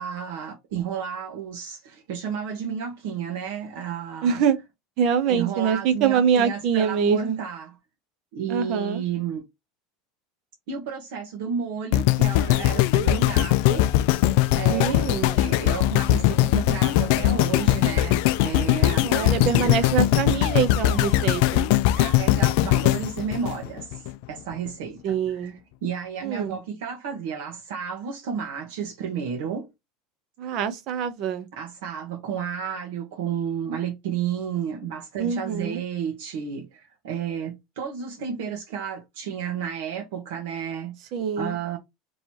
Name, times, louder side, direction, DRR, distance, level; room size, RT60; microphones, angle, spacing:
voice 1, 0.0-4.4 5.3-7.7 8.3-9.4 10.7-13.9 14.5-19.5 19.8-19.9 22.0-23.8 24.3-25.5 25.8-29.7 31.5-41.0 41.4-41.8, right 7 dB, 65° right, 1.1 m, -32 dB
voice 2, 4.2-4.6 5.0-7.4 8.5-9.0 14.7-15.4 19.0-21.7 25.0-25.6 26.2-26.6 30.4-31.5 35.2-35.8 41.1-41.6, right 7 dB, 40° right, 0.7 m, -24 dB
sound 1, 11.9-24.1 24.7-24.8, left 14 dB, 55° left, 0.3 m, -21 dB
3.0 x 2.8 x 4.5 m
supercardioid pair, 175°, 0 cm